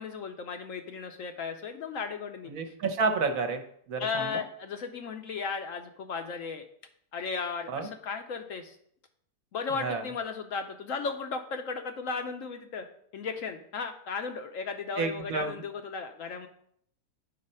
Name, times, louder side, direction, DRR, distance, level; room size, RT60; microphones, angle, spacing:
voice 1, 0.0-2.7 4.0-6.6 7.1-8.8 9.5-12.9 13.1-16.5, left 5 dB, 65° left, 6 dB, 0.9 m, -35 dB
voice 2, 2.5-3.6 3.9-4.4 7.7-7.9 9.8-10.0 15.0-15.6, right 4 dB, 60° right, 7 dB, 1.2 m, -30 dB
8.8 x 4.2 x 5.5 m, 0.67 s
omnidirectional pair, 1.7 m